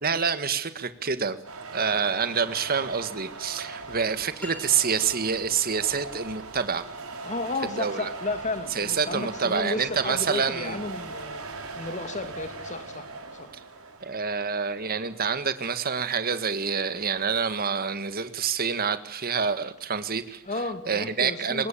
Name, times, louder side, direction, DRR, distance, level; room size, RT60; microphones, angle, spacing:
voice 1, 0.0-1.4 1.7-6.9 7.7-8.1 8.8-10.8 14.0-20.4 20.9-21.7, right 6 dB, 45° right, 11 dB, 1.8 m, -27 dB
sound 1, 1.4-21.1, right 3 dB, 80° right, 4.7 m, -41 dB
sound 2, 4.4-5.5, left 1 dB, 5° left, 4.2 m, -44 dB
voice 2, 7.2-11.4 11.8-13.1 13.3-13.5 20.4-21.7, left 2 dB, 35° left, 9 dB, 2.7 m, -33 dB
24.5 x 20.5 x 8.7 m, 0.66 s
head